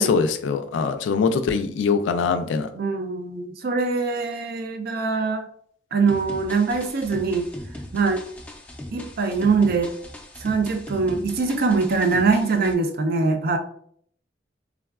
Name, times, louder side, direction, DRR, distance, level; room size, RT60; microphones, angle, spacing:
voice 1, 0.0-2.7, left 5 dB, 90° left, 8 dB, 0.3 m, -22 dB
voice 2, 2.7-5.5 5.9-7.5 7.9-8.2 8.9-9.9 10.4-13.6, right 4 dB, 55° right, 6 dB, 0.4 m, -23 dB
sound 1, 6.1-12.7, left 1 dB, 10° left, 0.3 m, -39 dB
3.5 x 2.2 x 2.3 m, 0.62 s
head